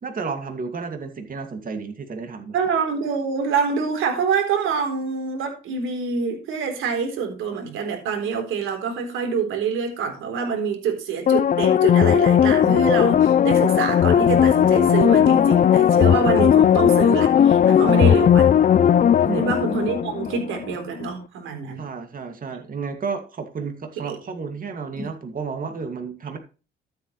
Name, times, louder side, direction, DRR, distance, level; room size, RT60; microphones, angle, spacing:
voice 1, 0.0-2.6 17.8-18.3 19.2-19.6 21.8-26.4, right 5 dB, 45° right, 2.3 m, -32 dB
voice 2, 2.5-18.7 19.3-21.8 24.0-24.2 25.0-25.1, right 5 dB, 90° right, 3.9 m, -26 dB
sound 1, 11.3-20.6 21.0-21.1, left 9 dB, 40° left, 0.5 m, -17 dB
13.0 x 8.0 x 3.2 m
cardioid pair, 90°, 20 cm